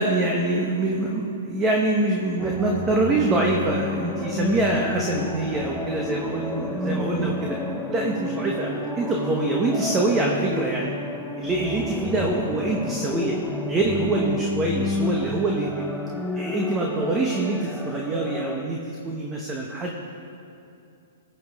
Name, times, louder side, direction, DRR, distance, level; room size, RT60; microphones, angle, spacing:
voice 1, 0.0-7.6 7.9-10.9 11.4-13.4 13.7-15.8 16.3-18.8 19.0-20.0, right 2 dB, 20° right, -1 dB, 1.2 m, -25 dB
sound 1, 2.4-18.6, left 2 dB, 5° left, 0.7 m, -30 dB
20.0 x 7.9 x 3.6 m, 2.7 s
hypercardioid pair, 130°, 0 cm